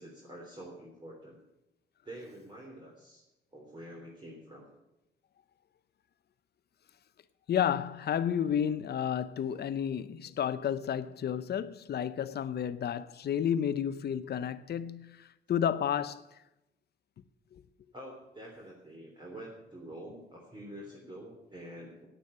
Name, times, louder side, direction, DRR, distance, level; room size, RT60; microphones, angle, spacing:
voice 1, 0.0-1.4 2.0-3.2 3.5-4.7 17.9-22.1, right 1 dB, 20° right, 3.2 m, -47 dB
voice 2, 7.5-16.3 17.5-17.6, left 9 dB, 55° left, 0.7 m, -31 dB
9.5 x 9.2 x 9.6 m
cardioid pair, 90°, 20 cm